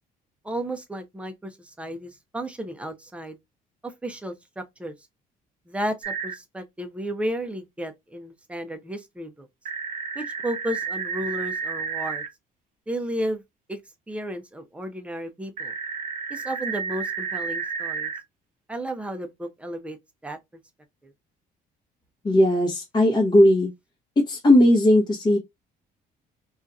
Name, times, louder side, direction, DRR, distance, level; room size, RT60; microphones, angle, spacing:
voice 1, 0.4-3.4 3.8-4.9 5.7-9.5 10.2-12.2 12.9-13.4 13.7-13.8 14.1-15.7 16.3-18.1 18.7-20.0 20.2-20.4, right 1 dB, 5° right, 0.5 m, -33 dB
sound 1, 6.0-6.3 9.7-12.3 15.6-18.2, right 6 dB, 50° right, 0.7 m, -31 dB
voice 2, 22.2-23.7 24.3-25.4, left 1 dB, 25° left, 0.9 m, -17 dB
2.7 x 2.4 x 2.3 m
cardioid pair, 110°, 17 cm